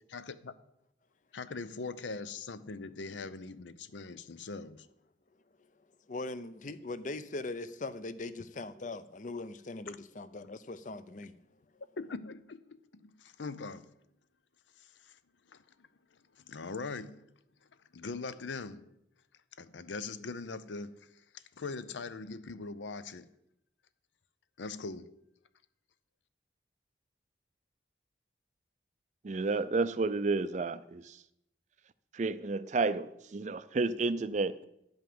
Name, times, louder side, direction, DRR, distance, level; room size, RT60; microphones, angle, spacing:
voice 1, 0.1-0.5 1.3-4.9 12.0-13.9 14.8-15.2 15.5-15.9 16.4-17.2 17.9-18.9 19.6-23.3 24.6-25.1, left 4 dB, 80° left, 0.6 m, -41 dB
voice 2, 6.1-11.4, left 2 dB, 45° left, 0.6 m, -40 dB
voice 3, 29.2-31.2 32.1-34.6, right 3 dB, 40° right, 0.4 m, -31 dB
11.0 x 5.3 x 7.7 m
head